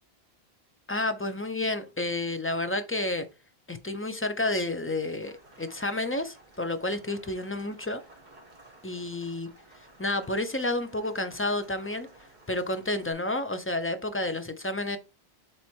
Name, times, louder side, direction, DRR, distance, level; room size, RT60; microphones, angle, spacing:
voice 1, 0.9-3.3 3.7-8.0 8.8-9.5 10.0-12.1 12.5-15.0, left 2 dB, 15° left, 0.6 m, -30 dB
Rain, 5.2-13.1, right 2 dB, 45° right, 1.9 m, -55 dB
7.4 x 3.3 x 4.5 m
omnidirectional pair, 1.1 m